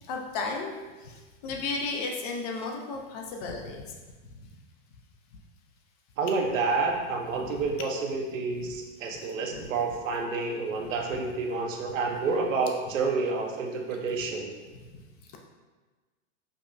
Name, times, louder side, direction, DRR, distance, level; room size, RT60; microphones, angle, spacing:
voice 1, 0.1-0.8 1.0-1.1 1.4-3.8 7.3-7.7 9.5-9.7, left 3 dB, 35° left, 2 dB, 0.4 m, -34 dB
voice 2, 6.2-14.5, right 4 dB, 85° right, 2 dB, 0.8 m, -29 dB
5.2 x 2.1 x 2.5 m, 1.3 s
hypercardioid pair, 145°, 38 cm